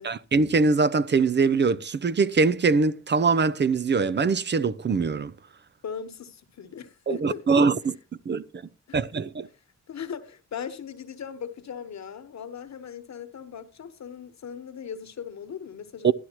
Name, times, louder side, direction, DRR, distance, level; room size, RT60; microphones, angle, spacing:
voice 1, 0.0-5.3 7.1-8.0 8.3-8.4 8.9-9.5 16.0-16.1, right 4 dB, 40° right, 0.6 m, -22 dB
voice 2, 5.8-7.4 8.9-9.0 9.9-16.1, left 7 dB, 65° left, 1.2 m, -38 dB
13.5 x 11.0 x 3.0 m
cardioid pair, 75°, 29 cm